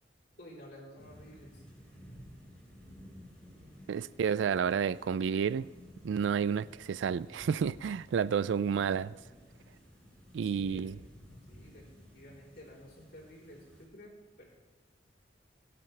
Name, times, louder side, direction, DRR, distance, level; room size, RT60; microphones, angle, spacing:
voice 1, 0.4-1.6 3.5-3.8 10.4-11.0 11.5-14.6, equal, 60° left, 3.8 m, -52 dB
sound 1, 1.0-13.8, equal, 5° left, 4.9 m, -54 dB
voice 2, 3.9-5.7 6.0-9.1 10.3-10.9, right 7 dB, 85° right, 0.3 m, -30 dB
25.0 x 8.7 x 3.4 m
head